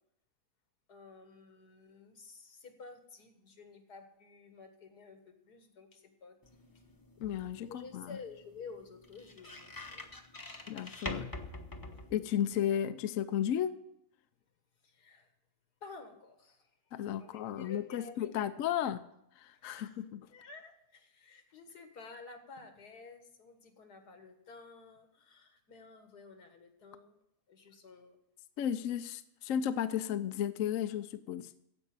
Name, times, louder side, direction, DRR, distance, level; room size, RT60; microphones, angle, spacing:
voice 1, 0.9-6.4 7.7-10.1 11.8-12.0 14.8-15.3 15.8-16.7 17.2-18.5 19.5-20.0 20.3-27.2 27.5-28.2, left 4 dB, 85° left, 6 dB, 2.2 m, -52 dB
sound 1, 6.4-12.7, left 2 dB, 15° left, 0.8 m, -46 dB
voice 2, 7.2-8.2 10.7-11.3 12.1-13.8 16.9-19.0 19.4-20.3 28.6-31.5, left 10 dB, 65° left, 11 dB, 0.9 m, -34 dB
15.5 x 5.4 x 8.7 m, 0.78 s
omnidirectional pair, 1.7 m